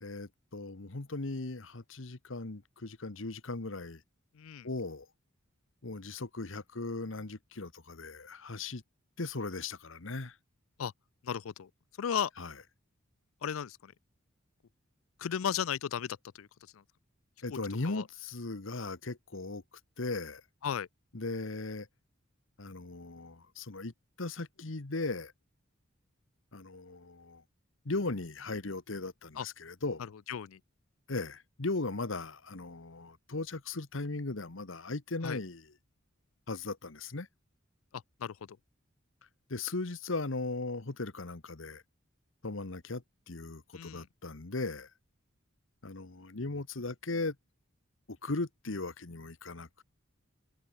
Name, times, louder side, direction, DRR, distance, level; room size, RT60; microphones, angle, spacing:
voice 1, 0.0-4.0 4.6-5.1 5.8-8.8 9.2-10.4 12.4-12.5 17.4-19.6 20.0-20.4 21.1-21.9 22.6-23.9 24.2-25.3 26.5-27.4 27.8-30.0 31.1-35.7 36.5-37.3 39.5-41.8 42.4-44.9 45.8-47.4 48.1-49.8, left 3 dB, 70° left, 1.3 m, -38 dB
voice 2, 4.4-4.7 10.8-10.9 11.2-11.7 12.0-12.3 13.4-13.9 15.2-16.5 17.5-17.6 17.8-18.0 20.6-20.9 29.4-29.5 30.3-30.6 35.2-35.4 37.9-38.3 43.7-44.1, left 8 dB, 85° left, 0.4 m, -35 dB
head